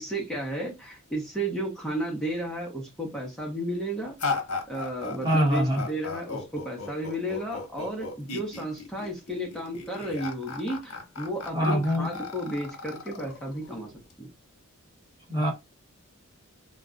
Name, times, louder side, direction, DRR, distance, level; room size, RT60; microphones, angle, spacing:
voice 1, 0.0-4.2 4.7-13.9 14.2-14.3, right 1 dB, ahead, 0.8 m, -33 dB
sound 1, 4.2-14.1, left 4 dB, 80° left, 0.9 m, -36 dB
voice 2, 5.2-5.8 11.5-12.1 15.3-15.5, equal, 20° right, 1.2 m, -23 dB
2.3 x 2.2 x 3.7 m
head